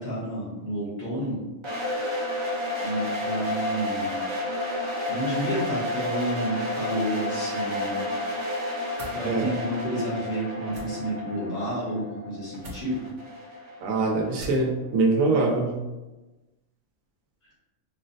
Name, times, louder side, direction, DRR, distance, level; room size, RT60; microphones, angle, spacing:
voice 1, 0.0-1.4 2.8-4.2 5.1-8.1 9.0-13.1, right 1 dB, 75° left, -9 dB, 1.9 m, -30 dB
sound 1, 1.6-14.5, left 1 dB, 35° right, 0.5 m, -31 dB
sound 2, 8.9-9.2 10.7-10.9 12.6-12.8 14.4-14.7, right 1 dB, 65° right, 1.1 m, -40 dB
voice 2, 13.8-15.8, right 3 dB, 85° right, 1 dB, 1.0 m, -23 dB
4.4 x 2.1 x 2.6 m, 1.1 s
omnidirectional pair, 1.4 m